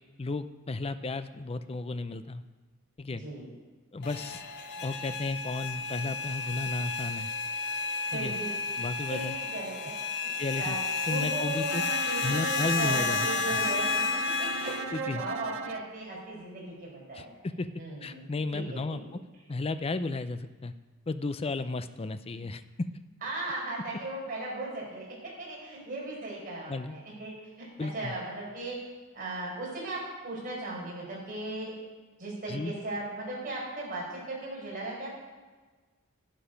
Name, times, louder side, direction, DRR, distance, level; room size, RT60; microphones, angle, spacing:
voice 1, 0.2-2.4 3.0-3.2 3.9-4.4 4.8-7.3 8.1-8.3 8.8-9.3 10.4-10.8 11.1-11.8 12.2-13.2 13.5-13.6 14.9-15.2 17.1-17.7 18.0-19.0 19.5-20.7 21.1-22.9 26.7-26.9 27.8-28.1 32.5-32.7, left 3 dB, 30° left, 11 dB, 0.5 m, -33 dB
voice 2, 3.1-3.5 8.1-8.6 9.1-10.8 11.1-11.8 12.0-14.0 14.4-17.3 17.8-19.0 23.2-27.7 27.9-28.8 29.1-31.7 32.2-35.1, right 2 dB, 40° right, -4 dB, 4.7 m, -37 dB
sound 1, 4.0-14.8, left 4 dB, 50° left, 0.8 m, -32 dB
Bowed string instrument, 11.7-15.9, right 6 dB, 65° right, 0.5 m, -37 dB
11.5 x 10.5 x 5.2 m, 1.3 s
head